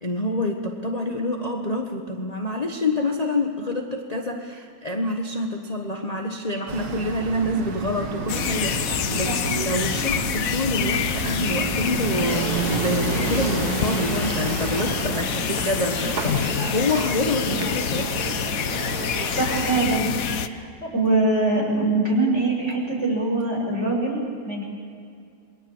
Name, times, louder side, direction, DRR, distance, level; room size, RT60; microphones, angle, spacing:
voice 1, 0.0-18.3, left 1 dB, 25° left, 2 dB, 1.4 m, -27 dB
sound 1, 6.7-15.1, right 5 dB, 85° right, 2.0 m, -30 dB
sound 2, 8.3-20.5, left 8 dB, 60° left, 1.2 m, -27 dB
sound 3, 12.3-19.8, right 7 dB, 65° right, 1.5 m, -33 dB
voice 2, 19.4-20.1 20.4-24.6, right 2 dB, 40° right, -2 dB, 6.5 m, -23 dB
28.5 x 22.0 x 7.4 m, 2.3 s
omnidirectional pair, 1.9 m